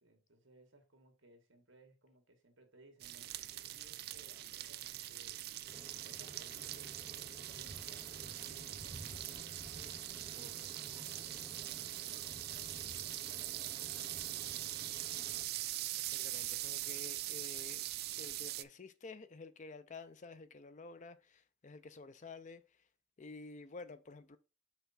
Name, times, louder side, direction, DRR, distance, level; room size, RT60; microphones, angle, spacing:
voice 1, 0.0-3.3 3.6-5.6 6.0-13.9, right 1 dB, 65° right, 1.7 m, -63 dB
sound 1, 3.0-18.6, right 15 dB, 50° right, 0.3 m, -42 dB
sound 2, 5.7-15.4, right 1 dB, 20° left, 2.3 m, -53 dB
sound 3, 10.0-13.7, equal, 25° right, 0.9 m, -68 dB
voice 2, 16.0-17.8 18.2-22.6 23.2-24.4, left 3 dB, 35° left, 0.4 m, -51 dB
5.7 x 3.5 x 5.6 m
head